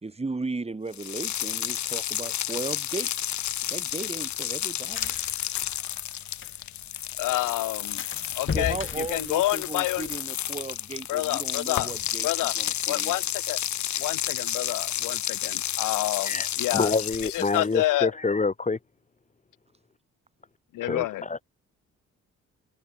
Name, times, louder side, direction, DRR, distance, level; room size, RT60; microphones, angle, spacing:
voice 1, 0.0-3.3 3.7-5.1 8.5-13.2, right 3 dB, 20° right, 2.7 m, -36 dB
sound 1, 0.9-17.7, left 11 dB, 65° left, 1.5 m, -31 dB
sound 2, 3.5-6.9 7.2-7.3 7.6-7.7 8.0-10.0, left 6 dB, 40° left, 3.0 m, -36 dB
voice 2, 7.2-8.0 8.3-10.1 11.1-11.9 12.2-12.5 12.9-13.6 14.0-16.9 17.2-18.1 20.7-21.2, left 16 dB, 85° left, 1.5 m, -28 dB
voice 3, 16.7-18.8 20.8-21.4, left 3 dB, 25° left, 2.9 m, -27 dB
cardioid pair, 80°, 31 cm